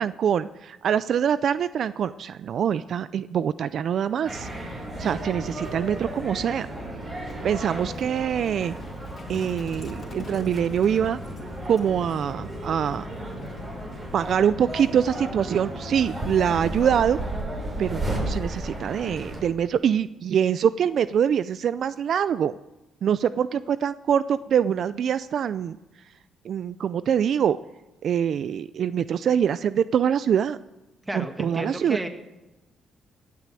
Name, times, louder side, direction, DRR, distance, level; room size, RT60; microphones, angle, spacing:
voice 1, 0.0-4.5 5.0-6.7 7.4-8.7 9.3-11.2 11.7-13.0 14.1-17.2 17.8-22.5 23.0-25.8 26.4-27.6 28.0-30.6 31.1-32.0, right 8 dB, 60° right, 15 dB, 0.4 m, -24 dB
sound 1, 4.2-19.4, right 1 dB, 35° right, 6.1 m, -34 dB
Livestock farm animals working animals, 7.2-14.5, left 3 dB, 40° left, 2.3 m, -47 dB
voice 2, 31.1-32.1, right 1 dB, 15° right, 6 dB, 1.9 m, -32 dB
17.0 x 8.4 x 7.5 m, 1.0 s
cardioid pair, 90°, 0 cm